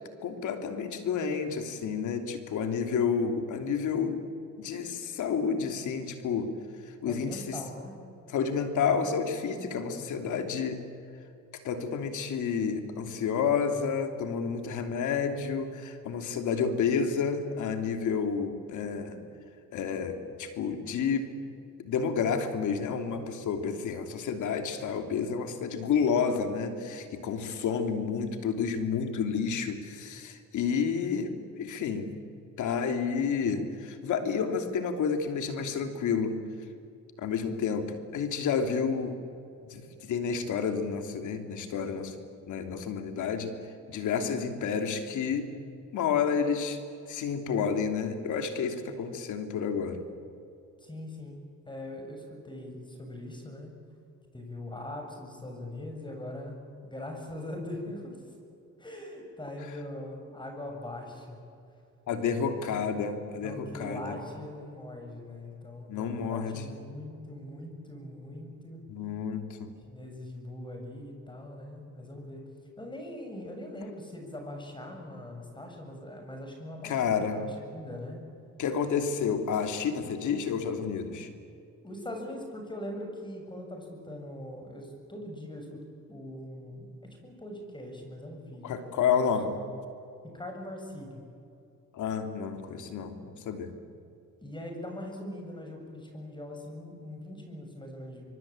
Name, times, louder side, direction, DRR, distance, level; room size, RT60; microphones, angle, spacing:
voice 1, 0.2-4.2 4.6-6.5 6.8-7.6 8.3-10.8 11.5-19.2 19.7-21.3 21.8-32.2 32.6-36.4 37.2-39.2 39.7-42.1 42.5-43.5 43.9-45.5 45.9-46.8 47.1-50.0 62.1-64.2 65.9-66.7 68.9-69.7 76.8-77.4 78.6-81.3 88.6-89.5 91.9-93.7, left 6 dB, 75° left, 7 dB, 3.0 m, -30 dB
voice 2, 7.0-8.0 9.7-10.3 50.8-53.7 54.3-58.3 58.8-61.4 62.1-62.4 63.4-68.9 69.9-72.4 72.8-78.2 81.8-85.8 86.1-86.9 87.2-89.1 89.5-89.6 90.2-91.2 94.4-98.3, left 1 dB, 15° left, 3 dB, 7.7 m, -41 dB
25.5 x 23.5 x 8.9 m, 2.6 s
cardioid pair, 90°, 30 cm